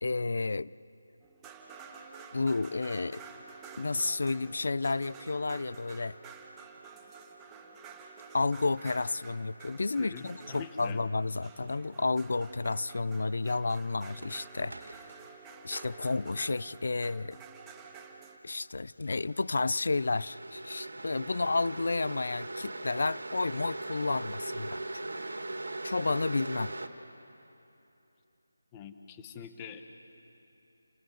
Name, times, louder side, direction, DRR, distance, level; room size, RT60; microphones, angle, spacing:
voice 1, 0.0-0.7 2.3-3.2 3.8-6.2 8.3-15.0 15.6-17.4 18.4-25.0 25.8-26.7, left 3 dB, 65° left, 20 dB, 0.5 m, -31 dB
sound 1, 1.2-18.4, right 5 dB, 10° right, 1.4 m, -50 dB
voice 2, 10.0-11.0 28.7-29.8, left 7 dB, 15° left, 7 dB, 1.2 m, -44 dB
sound 2, 11.6-11.8 14.2-15.1 15.8-15.9 19.0-26.9, right 2 dB, 85° right, 2.0 m, -40 dB
29.5 x 15.5 x 7.6 m, 3.0 s
figure-of-eight pair, 165°, 0 cm